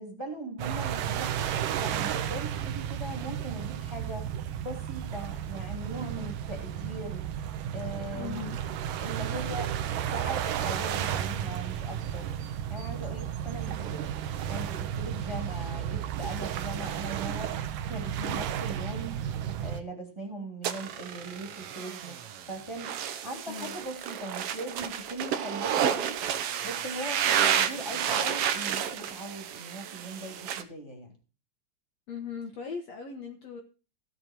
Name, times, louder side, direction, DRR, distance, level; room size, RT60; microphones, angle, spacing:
voice 1, 0.0-4.3 4.6-7.2 7.7-8.4 9.0-12.3 12.7-14.1 14.4-19.2 19.6-22.2 22.5-26.2 26.6-31.1, right 1 dB, 10° right, 0 dB, 2.7 m, -40 dB
sound 1, 0.6-19.8, right 10 dB, 85° right, 2.5 m, -33 dB
voice 2, 8.1-8.6 23.5-23.7 32.1-33.6, left 6 dB, 60° left, 3 dB, 2.3 m, -38 dB
sound 2, 20.6-30.6, right 9 dB, 65° right, 1.6 m, -31 dB
16.0 x 7.1 x 4.6 m, 0.35 s
omnidirectional pair, 3.7 m